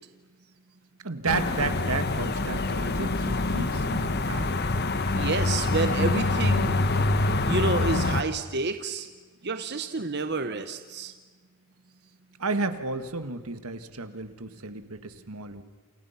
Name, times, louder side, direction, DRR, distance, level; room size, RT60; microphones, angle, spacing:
voice 1, 1.0-4.6 12.4-15.6, right 3 dB, 80° right, 10 dB, 1.7 m, -32 dB
sound 1, 1.3-8.2, left 2 dB, 45° left, 1.2 m, -25 dB
voice 2, 5.1-6.7 7.4-9.1 9.4-11.1, right 3 dB, 50° right, 8 dB, 1.1 m, -29 dB
29.0 x 28.0 x 5.8 m, 1.4 s
head